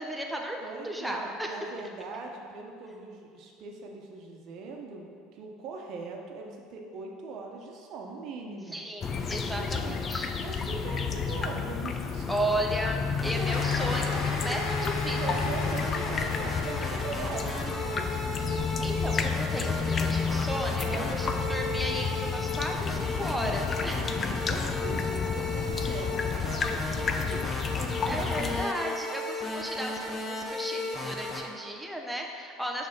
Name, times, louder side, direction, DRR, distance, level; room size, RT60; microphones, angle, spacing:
voice 1, 0.0-1.5 8.7-10.3 12.3-15.4 18.8-24.0 25.9-26.0 28.1-32.9, right 1 dB, 5° right, 1 dB, 0.9 m, -34 dB
voice 2, 0.6-8.8 9.5-10.0 10.4-12.3 15.1-18.4 20.8-21.2 23.9-28.6, right 4 dB, 60° right, 1 dB, 1.0 m, -41 dB
sound 1, 9.0-28.7, left 6 dB, 35° left, 0.5 m, -31 dB
sound 2, 13.2-31.4, left 2 dB, 15° left, 1.1 m, -35 dB
Cheering / Applause, 13.4-18.4, left 3 dB, 70° left, 0.9 m, -38 dB
6.3 x 3.6 x 6.0 m, 2.3 s
supercardioid pair, 85°, 0 cm